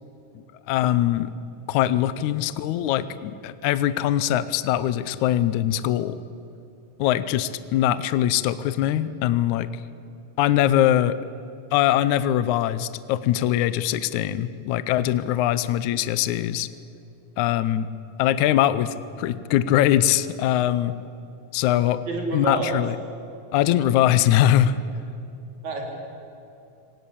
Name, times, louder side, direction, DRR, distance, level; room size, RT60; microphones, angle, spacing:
voice 1, 0.7-1.3 1.7-6.2 7.0-9.7 10.4-11.2 11.7-16.7 17.4-17.9 18.2-20.9 21.5-22.0 22.3-23.0 23.5-24.7, left 12 dB, 75° left, 14 dB, 1.9 m, -22 dB
voice 2, 22.1-22.8 25.6-25.8, right 3 dB, 55° right, 1 dB, 5.2 m, -27 dB
26.0 x 19.0 x 8.6 m, 2.7 s
omnidirectional pair, 3.9 m